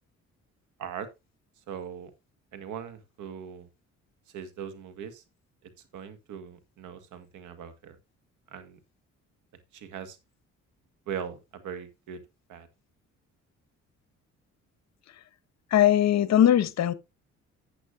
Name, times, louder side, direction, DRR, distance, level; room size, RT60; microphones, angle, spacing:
voice 1, 1.7-2.1 2.5-3.7 4.3-5.2 5.6-8.0 8.5-8.8 9.7-10.2 11.1-12.2 12.5-12.7, right 8 dB, 85° right, 1.7 m, -40 dB
voice 2, 15.7-16.9, left 11 dB, 60° left, 1.0 m, -20 dB
12.0 x 8.5 x 2.6 m
cardioid pair, 90°, 30 cm